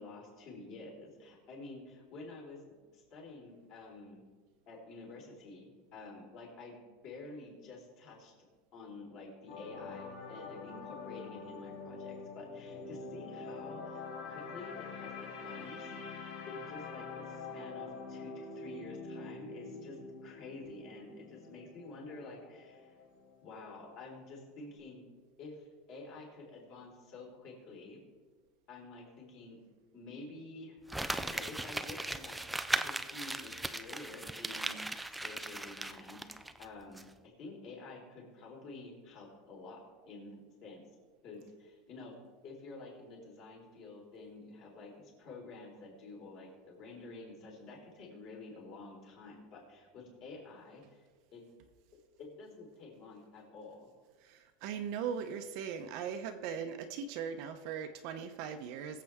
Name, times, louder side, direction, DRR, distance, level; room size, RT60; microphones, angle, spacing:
voice 1, 0.0-2.6 2.9-4.2 4.7-6.8 7.0-8.3 8.7-15.9 16.5-23.0 23.4-25.0 25.4-28.0 28.7-29.6 29.9-30.8 31.1-32.4 32.8-40.8 41.2-42.1 42.4-51.0 51.3-51.4 52.2-53.9, left 3 dB, 40° left, -2 dB, 3.8 m, -49 dB
sound 1, 9.5-23.6 23.9-24.2, left 4 dB, 80° left, 4.4 m, -45 dB
Crumpling crinkling, 30.9-36.6 37.0-37.1, right 1 dB, 5° right, 0.3 m, -38 dB
voice 2, 54.2-59.0, right 7 dB, 45° right, 7 dB, 0.8 m, -39 dB
21.5 x 7.5 x 3.6 m, 1.4 s
supercardioid pair, 170°, 0 cm